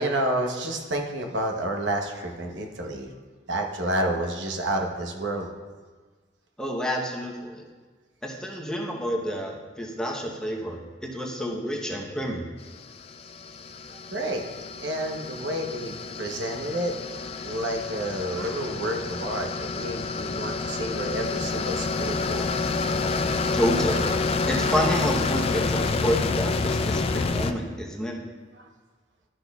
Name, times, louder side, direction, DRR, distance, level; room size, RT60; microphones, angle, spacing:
voice 1, 0.0-3.1 3.5-5.5 14.1-14.5 14.8-16.9 17.4-22.5 28.5-28.7, right 1 dB, 70° right, 2 dB, 0.9 m, -29 dB
voice 2, 6.6-7.6 8.2-12.5 23.5-24.1 24.5-28.1, equal, 5° left, -1 dB, 0.9 m, -29 dB
sound 1, 12.8-27.5, left 4 dB, 30° left, 0.3 m, -28 dB
12.0 x 6.1 x 2.3 m, 1.4 s
head